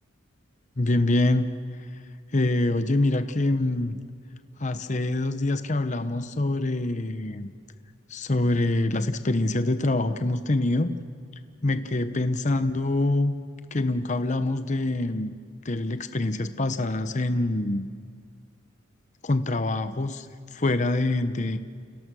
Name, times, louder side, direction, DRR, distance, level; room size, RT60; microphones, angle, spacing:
voice 1, 0.8-1.5 2.3-4.0 4.6-7.5 8.1-11.0 11.6-13.4 13.7-15.3 15.6-17.9 19.2-20.3 20.5-21.6, left 2 dB, 35° left, 10 dB, 0.8 m, -25 dB
29.5 x 29.5 x 6.2 m, 2.1 s
head